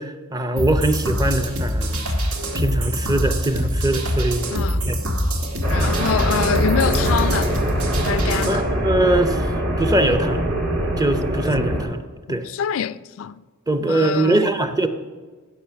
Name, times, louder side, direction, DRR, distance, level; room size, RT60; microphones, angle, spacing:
voice 1, 0.0-2.1 2.5-4.5 4.9-5.0 8.5-9.5 9.8-10.4 11.0-12.0 12.3-12.5 13.7-14.9, right 1 dB, 15° right, 0.6 m, -22 dB
sound 1, 0.6-8.6, equal, 85° right, 1.7 m, -24 dB
voice 2, 4.5-4.8 5.7-7.5 8.0-8.7 12.3-13.3 13.9-14.5, left 7 dB, 70° left, 0.3 m, -25 dB
sound 2, 5.6-11.8, equal, 55° right, 1.9 m, -23 dB
16.0 x 6.4 x 5.7 m
head